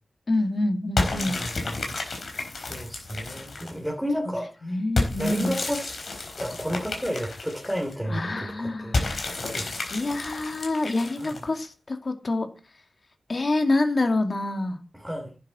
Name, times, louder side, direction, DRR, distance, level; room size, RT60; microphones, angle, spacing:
voice 1, 0.3-1.4 4.6-5.5 8.1-9.1 9.9-12.5 13.3-14.8, left 2 dB, 55° left, 2.3 m, -26 dB
sound 1, 1.0-3.9 5.0-7.9 8.9-11.6, left 3 dB, 70° left, 4.2 m, -31 dB
voice 2, 1.1-2.0 2.6-4.8 5.2-6.0 6.4-9.1 9.4-9.8 11.2-11.4 14.9-15.3, equal, ahead, 3.3 m, -32 dB
11.0 x 9.5 x 4.3 m
cardioid pair, 65°, 0 cm